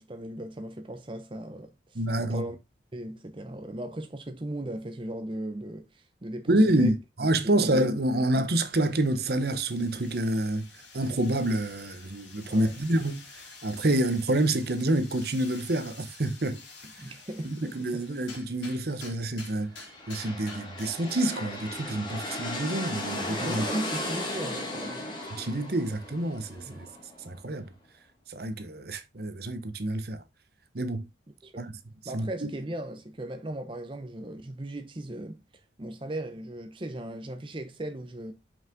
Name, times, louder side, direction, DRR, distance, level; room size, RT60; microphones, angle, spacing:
voice 1, 0.0-2.6 2.9-6.9 7.4-7.8 12.5-12.8 17.0-18.1 23.4-25.2 26.7-26.8 31.4-31.7 32.0-35.4 35.8-38.3, right 1 dB, 25° right, 0.7 m, -37 dB
voice 2, 1.9-2.4 6.5-16.6 17.4-19.8 20.1-23.6 25.3-26.9 27.2-27.7 28.3-30.2 30.7-31.1 31.6-31.7 32.1-32.5, right 1 dB, 55° right, 0.9 m, -28 dB
sound 1, 8.6-21.8, left 4 dB, 75° left, 3.2 m, -50 dB
sound 2, 19.7-27.4, left 1 dB, 25° left, 2.1 m, -36 dB
5.7 x 5.5 x 3.7 m
head